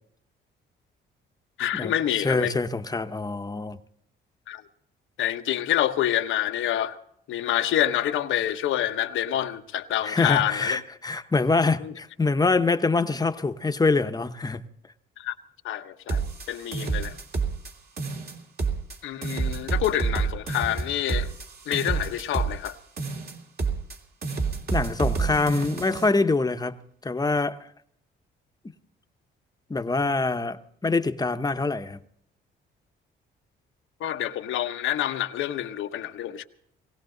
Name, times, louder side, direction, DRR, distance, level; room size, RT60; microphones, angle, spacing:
voice 1, 1.6-2.5 4.5-4.6 5.2-7.0 7.3-10.8 11.8-11.9 15.2-15.3 15.6-17.1 19.0-21.3 21.7-22.8 34.0-36.4, left 12 dB, 80° left, 1.1 m, -27 dB
voice 2, 2.2-3.8 10.0-14.6 24.7-27.7 29.7-32.0, left 3 dB, 20° left, 1.0 m, -25 dB
sound 1, 16.1-17.7 18.0-19.0 19.2-22.7 23.0-24.0 24.2-26.1, right 4 dB, 50° right, 2.8 m, -28 dB
20.0 x 17.0 x 3.9 m
cardioid pair, 90°, 20 cm